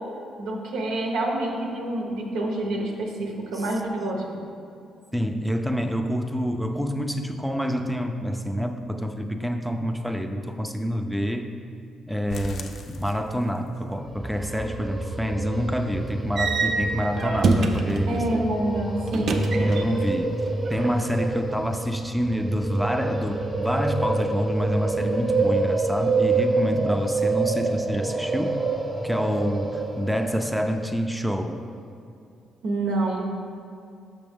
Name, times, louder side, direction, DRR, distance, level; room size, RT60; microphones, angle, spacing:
voice 1, 0.4-4.2 18.1-19.4 32.6-33.2, right 1 dB, 90° right, 0 dB, 0.9 m, -27 dB
voice 2, 5.1-11.5 12.1-18.4 19.6-20.3 20.7-28.6 29.0-31.6, equal, ahead, 5 dB, 0.4 m, -27 dB
sound 1, 12.3-13.8 14.1-14.2 14.7-14.8 15.2-15.3, left 3 dB, 60° left, 0.5 m, -39 dB
sound 2, 14.0-31.0, right 3 dB, 20° right, 1.0 m, -27 dB
sound 3, 16.4-18.1 19.1-20.2 20.4-21.3, right 3 dB, 60° right, 0.6 m, -25 dB
6.0 x 6.0 x 3.6 m, 2.5 s
cardioid pair, 90°, 0 cm